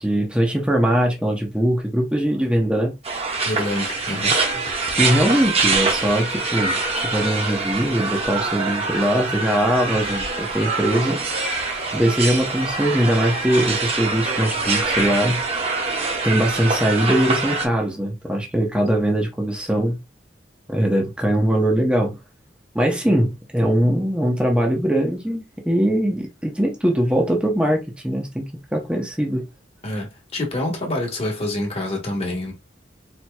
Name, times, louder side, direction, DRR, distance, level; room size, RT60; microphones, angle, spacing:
voice 1, 0.0-2.9 5.0-6.8 7.0-11.2 11.9-15.4 16.2-20.0 20.7-22.2 22.7-29.5, equal, 5° right, 0.7 m, -21 dB
sound 1, 3.0-17.7, right 3 dB, 35° right, 0.8 m, -24 dB
voice 2, 3.4-4.4 29.8-32.5, left 1 dB, 35° left, 1.3 m, -26 dB
4.3 x 2.9 x 2.2 m
head